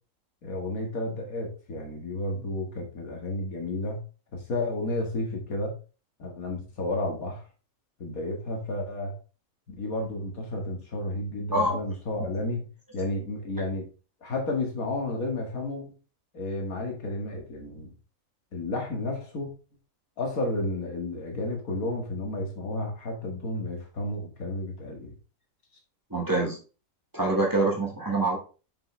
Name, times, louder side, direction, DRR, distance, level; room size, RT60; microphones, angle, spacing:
voice 1, 0.4-4.0 4.3-5.8 6.2-7.5 8.0-9.1 9.7-12.7 12.9-13.9 14.2-15.9 16.3-17.9 18.5-19.5 20.2-25.1, left 2 dB, 85° left, 2 dB, 2.3 m, -32 dB
voice 2, 26.1-26.6 27.1-28.4, right 2 dB, 15° right, -1 dB, 1.7 m, -25 dB
6.7 x 5.9 x 3.2 m, 0.34 s
omnidirectional pair, 1.4 m